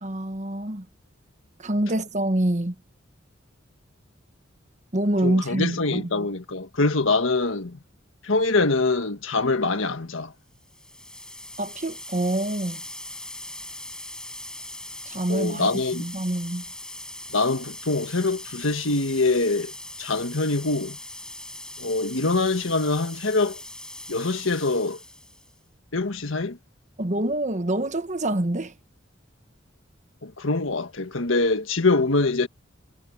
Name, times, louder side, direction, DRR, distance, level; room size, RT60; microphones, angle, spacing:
voice 1, 0.0-0.8 1.6-2.7 4.9-6.2 11.6-12.8 15.1-16.6 27.0-28.7, right 1 dB, 35° right, 1.4 m, -26 dB
voice 2, 5.2-7.8 8.2-10.3 15.3-16.1 17.3-19.7 20.0-21.0 21.8-23.6 24.1-25.0 25.9-26.6 30.2-32.5, left 3 dB, 85° left, 1.6 m, -24 dB
sound 1, 10.6-25.6, left 1 dB, 5° left, 6.2 m, -40 dB
head